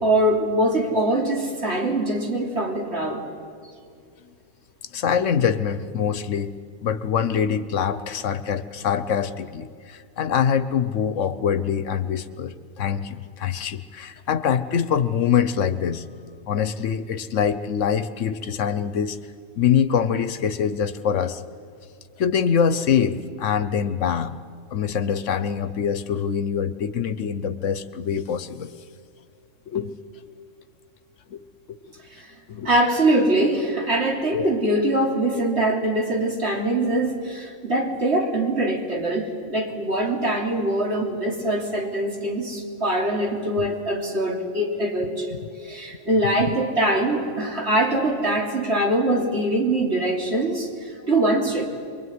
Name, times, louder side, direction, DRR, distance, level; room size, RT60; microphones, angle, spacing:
voice 1, 0.0-3.2 32.1-32.3 32.6-45.3 45.6-51.7, right 1 dB, 55° right, 1 dB, 3.4 m, -23 dB
voice 2, 4.9-6.5 6.8-16.0 16.5-19.2 19.6-21.4 22.2-24.4 24.7-28.7 29.7-30.0 31.3-31.4 31.7-31.8 32.5-32.7, left 7 dB, 70° left, 13 dB, 1.3 m, -24 dB
24.0 x 23.0 x 9.6 m, 2.2 s
omnidirectional pair, 1.3 m